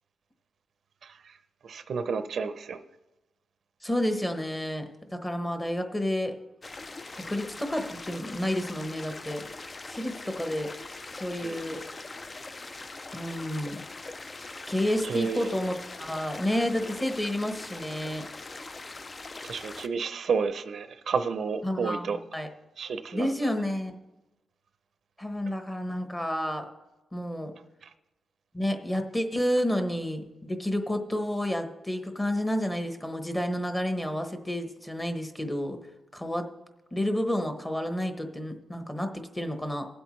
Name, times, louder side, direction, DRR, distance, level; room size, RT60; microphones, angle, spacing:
voice 1, 1.0-1.4 1.6-2.8 11.4-11.6 15.0-15.5 19.4-22.2 22.8-23.6 27.8-27.9, right 5 dB, 60° right, 10 dB, 0.6 m, -31 dB
voice 2, 3.8-6.3 7.1-9.4 9.9-10.7 11.1-11.8 13.1-13.8 14.7-18.3 21.6-22.5 23.1-24.0 25.2-26.7 27.1-27.5 28.5-35.8 36.1-36.4 36.9-39.9, left 1 dB, 10° left, 6 dB, 1.1 m, -30 dB
sound 1, 6.6-19.9, left 3 dB, 25° left, 0.4 m, -42 dB
19.0 x 8.0 x 3.2 m, 1.0 s
wide cardioid pair, 125°, 0 cm